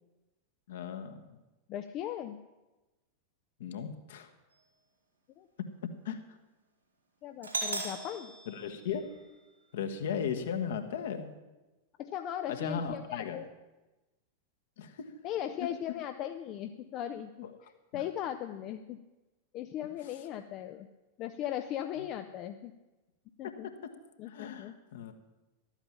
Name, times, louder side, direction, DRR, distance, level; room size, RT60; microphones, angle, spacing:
voice 1, 0.7-1.4 3.6-4.3 5.8-6.2 8.5-9.1 9.7-11.3 12.5-13.4 14.8-15.1 17.9-18.0 20.0-20.1 23.4-23.9 24.3-25.1, left 7 dB, 60° left, 7 dB, 1.3 m, -37 dB
voice 2, 1.7-2.4 5.4-5.5 7.2-8.3 12.0-13.4 15.2-17.5 17.9-19.0 19.5-20.9 21.2-22.7 23.4-23.7 24.2-24.7, left 11 dB, 35° left, 8 dB, 0.6 m, -38 dB
Doorbell, 7.4-9.4, right 3 dB, 80° right, 2.7 m, -38 dB
13.0 x 9.0 x 7.2 m, 1.1 s
figure-of-eight pair, 90°, 0 cm